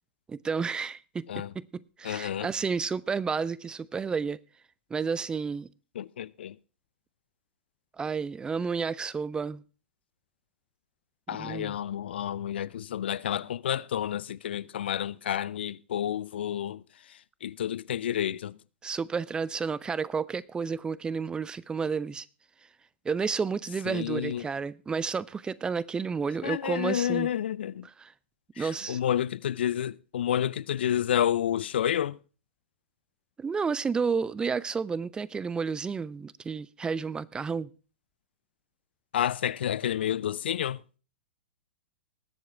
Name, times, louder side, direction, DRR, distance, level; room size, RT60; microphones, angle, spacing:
voice 1, 0.3-4.4 4.9-5.7 8.0-9.6 11.3-11.8 18.8-22.3 23.0-27.3 27.8-28.1 28.6-29.0 33.4-37.7, right 5 dB, 15° right, 0.5 m, -31 dB
voice 2, 2.0-2.5 6.0-6.5 11.3-16.8 17.4-18.6 23.9-24.4 26.4-27.9 28.6-32.2 39.1-40.8, left 10 dB, 65° left, 0.5 m, -30 dB
20.0 x 7.9 x 3.3 m
figure-of-eight pair, 105°, 6 cm